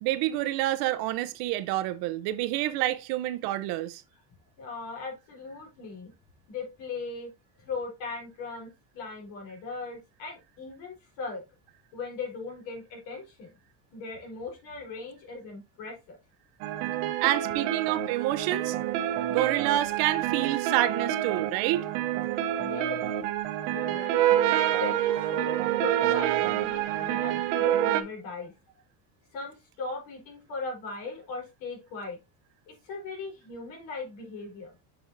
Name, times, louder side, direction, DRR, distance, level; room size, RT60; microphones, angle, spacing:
voice 1, 0.0-4.0 17.2-18.8 19.3-21.9, right 14 dB, 60° right, 0.7 m, -28 dB
voice 2, 4.6-6.1 6.5-7.3 7.6-11.4 11.9-13.5 13.9-16.2 22.6-23.0 23.7-24.2 24.8-28.5 29.3-32.2 32.7-34.7, left 4 dB, 70° left, 4.0 m, -38 dB
sound 1, 16.6-28.0, right 12 dB, 80° right, 1.0 m, -27 dB
7.3 x 6.3 x 2.6 m
cardioid pair, 180°, 42 cm